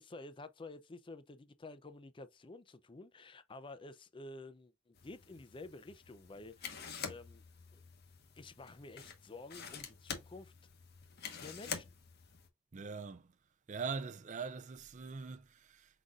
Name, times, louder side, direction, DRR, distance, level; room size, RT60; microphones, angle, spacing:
voice 1, 0.0-7.4 7.7-7.8 8.4-10.5 11.4-11.9, left 2 dB, 25° left, 0.4 m, -51 dB
sound 1, 5.0-12.5, left 6 dB, 50° left, 0.9 m, -47 dB
voice 2, 12.7-13.3 13.7-16.0, right 5 dB, 35° right, 0.4 m, -42 dB
4.8 x 4.0 x 2.4 m
head